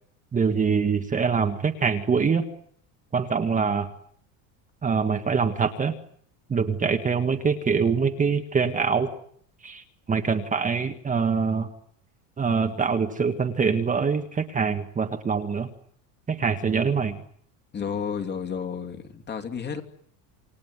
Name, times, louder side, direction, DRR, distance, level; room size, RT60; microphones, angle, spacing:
voice 1, 0.3-2.4 3.1-3.9 4.8-5.9 6.5-9.1 9.6-11.7 12.4-15.7 16.3-17.2, right 5 dB, 20° right, 6 dB, 1.7 m, -24 dB
voice 2, 17.7-19.8, left 7 dB, 25° left, 4 dB, 2.9 m, -31 dB
28.5 x 19.5 x 9.6 m, 0.64 s
cardioid pair, 145°, 42 cm